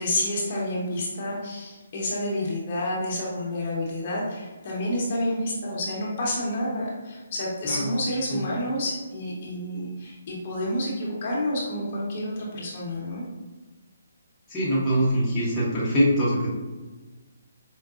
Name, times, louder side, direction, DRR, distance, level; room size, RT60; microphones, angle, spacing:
voice 1, 0.0-13.2, left 1 dB, 40° left, -4 dB, 1.0 m, -29 dB
voice 2, 14.5-16.5, equal, 15° left, -10 dB, 0.9 m, -23 dB
4.7 x 2.2 x 2.4 m, 1.2 s
hypercardioid pair, 155°, 0 cm